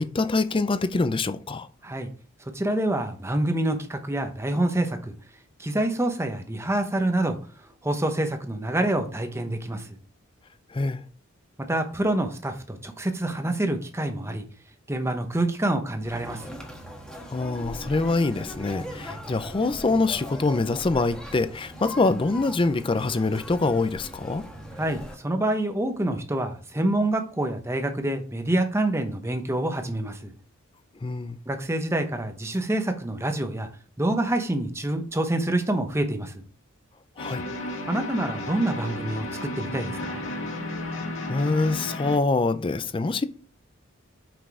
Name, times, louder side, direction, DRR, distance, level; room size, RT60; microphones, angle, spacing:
voice 1, 0.0-1.7 10.7-11.0 17.3-24.4 31.0-31.4 37.2-37.4 41.3-43.3, left 3 dB, 25° left, 0.5 m, -25 dB
voice 2, 2.4-5.1 5.6-7.4 7.8-10.0 11.7-14.4 14.9-16.4 24.8-30.3 31.5-33.7 34.0-36.4 37.9-40.3, right 1 dB, 15° right, 0.9 m, -27 dB
Conversation, 16.0-25.1, equal, 5° left, 1.3 m, -40 dB
sound 1, 37.2-42.2, left 1 dB, 70° left, 1.9 m, -33 dB
6.1 x 5.2 x 4.8 m
head